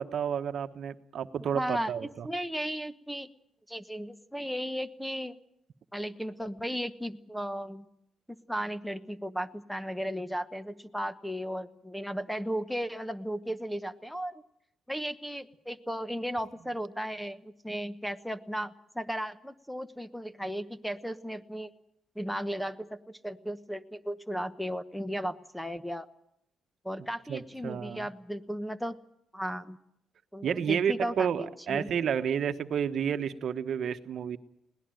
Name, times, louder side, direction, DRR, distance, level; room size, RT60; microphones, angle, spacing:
voice 1, 0.0-2.3 27.3-28.1 30.4-34.4, right 8 dB, 60° right, 9 dB, 1.1 m, -31 dB
voice 2, 1.5-3.3 3.7-5.4 5.9-7.8 8.5-14.4 14.9-21.7 22.1-26.1 26.8-29.0 29.3-29.8 30.3-31.9, equal, ahead, 12 dB, 1.0 m, -35 dB
21.0 x 18.0 x 9.1 m, 0.77 s
cardioid pair, 90°, 0 cm